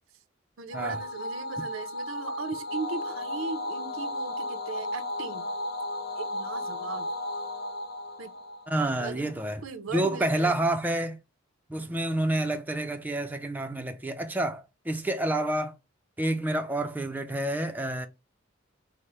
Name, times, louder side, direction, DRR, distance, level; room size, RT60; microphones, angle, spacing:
voice 1, 0.6-5.5 6.2-7.1 8.2-8.3 9.0-9.3 9.6-10.6, right 4 dB, 85° right, 0.7 m, -38 dB
sound 1, 0.7-9.3, left 1 dB, 50° left, 0.7 m, -34 dB
voice 2, 8.7-9.6 9.9-11.2 11.7-15.7 16.2-18.1, right 1 dB, 10° right, 0.5 m, -28 dB
4.9 x 2.1 x 4.2 m
head